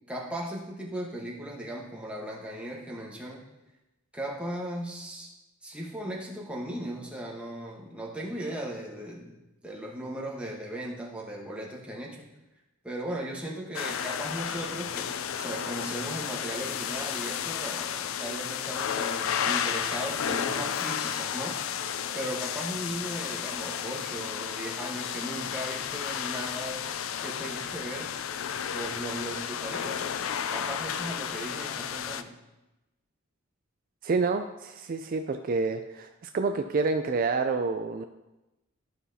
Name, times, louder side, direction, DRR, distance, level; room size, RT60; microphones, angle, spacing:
voice 1, 0.1-3.4 4.1-5.3 5.6-9.3 9.6-12.3 12.8-15.1 15.4-28.1 28.7-30.1 30.5-32.3, right 1 dB, 5° right, -3 dB, 1.2 m, -37 dB
sound 1, 13.7-32.2, left 8 dB, 80° left, 0.4 m, -32 dB
voice 2, 34.0-38.0, right 4 dB, 45° right, 6 dB, 0.3 m, -28 dB
12.5 x 5.7 x 2.7 m, 0.99 s
head